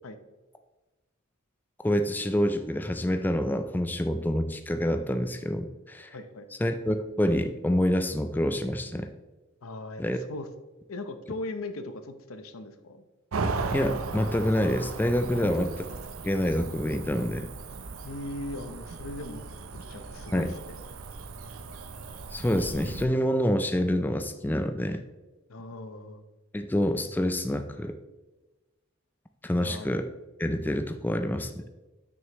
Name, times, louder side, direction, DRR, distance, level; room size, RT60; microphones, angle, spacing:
voice 1, 1.8-6.1 6.6-9.1 10.0-10.2 13.7-15.7 16.2-17.5 20.3-20.5 22.3-25.0 26.5-28.0 29.4-30.1 30.4-31.6, equal, 10° left, 7 dB, 0.3 m, -27 dB
voice 2, 6.1-6.5 9.6-10.5 10.9-13.0 15.3-15.7 18.0-19.5 19.9-20.8 25.5-26.2 29.6-29.9, left 2 dB, 90° left, 9 dB, 0.8 m, -39 dB
Cricket / Motor vehicle (road), 13.3-23.0, right 4 dB, 85° right, 0.6 m, -37 dB
9.1 x 6.2 x 3.0 m, 1.2 s
head